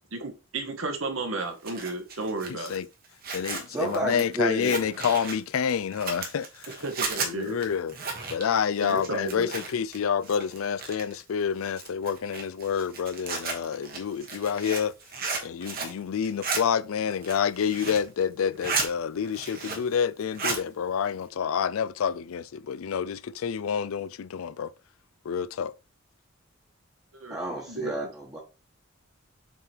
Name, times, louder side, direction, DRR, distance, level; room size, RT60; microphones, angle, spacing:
voice 1, 0.1-2.7 6.8-7.6 8.8-9.5 27.1-27.4 27.7-27.9, right 3 dB, 80° right, 1.6 m, -33 dB
Zipper (clothing), 1.4-10.0 10.2-11.2 11.7-16.0 16.2-16.6 17.1-18.1 18.4-18.9 19.2-20.0 20.2-20.6, right 4 dB, 45° right, 1.5 m, -34 dB
voice 2, 2.4-2.9 3.3-6.9 7.2-8.0 8.3-14.9 15.4-24.7 25.2-25.7, left 7 dB, 90° left, 0.4 m, -28 dB
voice 3, 3.7-4.8 27.3-28.4, right 2 dB, 15° right, 1.3 m, -31 dB
7.1 x 3.4 x 4.5 m
head